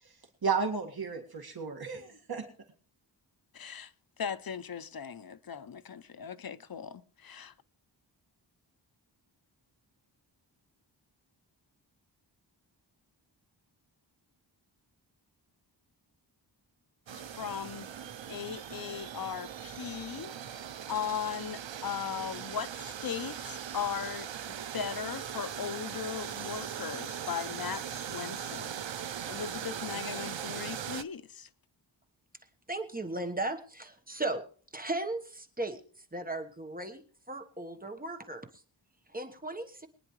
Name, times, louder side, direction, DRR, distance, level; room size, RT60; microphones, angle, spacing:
voice 1, 0.4-2.5, right 5 dB, 55° right, 2.0 m, -33 dB
voice 2, 3.5-3.9 4.2-7.5 17.1-17.9 18.3-31.5, left 8 dB, 55° left, 0.8 m, -38 dB
sound 1, 17.1-31.0, right 9 dB, 85° right, 0.8 m, -40 dB
voice 3, 32.7-34.4 34.7-35.8 36.1-38.5 39.1-39.9, right 2 dB, 20° right, 1.2 m, -36 dB
22.5 x 9.9 x 3.2 m
wide cardioid pair, 115°, 44 cm